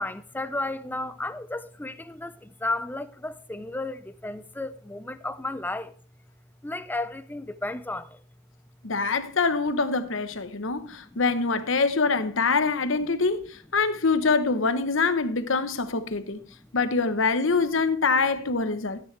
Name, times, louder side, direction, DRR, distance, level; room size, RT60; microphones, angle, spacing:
voice 1, 0.0-5.9 6.6-8.2 11.0-11.2, left 2 dB, 10° left, 0.5 m, -33 dB
voice 2, 8.8-16.4 16.7-19.0, left 4 dB, 65° left, 1.0 m, -24 dB
13.0 x 9.2 x 3.3 m
head